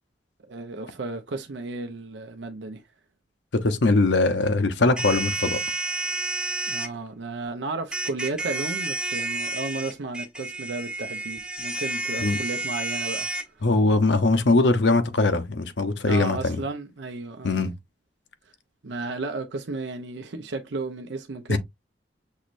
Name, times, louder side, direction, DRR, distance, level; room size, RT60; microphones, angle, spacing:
voice 1, 0.5-2.8 6.7-13.3 16.1-17.7 18.8-21.6, right 3 dB, 85° right, 0.6 m, -33 dB
voice 2, 3.5-5.6 12.2-12.4 13.6-16.6 17.4-17.7 21.5-21.6, left 3 dB, 80° left, 0.8 m, -21 dB
sound 1, 5.0-6.9 7.9-13.4, right 2 dB, 5° right, 0.5 m, -30 dB
6.4 x 3.1 x 2.5 m
head